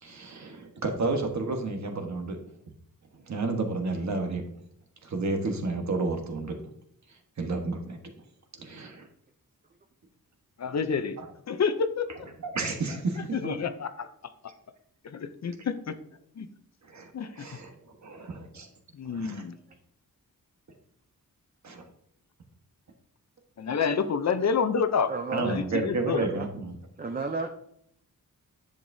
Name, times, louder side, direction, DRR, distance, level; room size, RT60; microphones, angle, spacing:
voice 1, 0.0-2.4 3.3-4.4 5.0-6.6 7.4-8.0 8.6-9.1 11.2-11.3 12.5-13.3 16.9-17.1 17.3-17.7 18.0-18.7 19.0-19.4 21.6-21.8 25.3-26.7, right 3 dB, 50° right, 4 dB, 1.3 m, -31 dB
voice 2, 10.6-11.2 11.5-12.1 13.3-14.1 15.0-15.9 16.4-16.5 17.1-17.5 18.9-19.6 23.6-25.1 25.4-26.2, left 6 dB, 50° left, 10 dB, 0.6 m, -28 dB
voice 3, 25.1-25.6 26.1-26.5 27.0-27.5, right 3 dB, 25° right, 5 dB, 0.5 m, -33 dB
10.5 x 6.6 x 2.7 m, 0.70 s
wide cardioid pair, 170°, 35 cm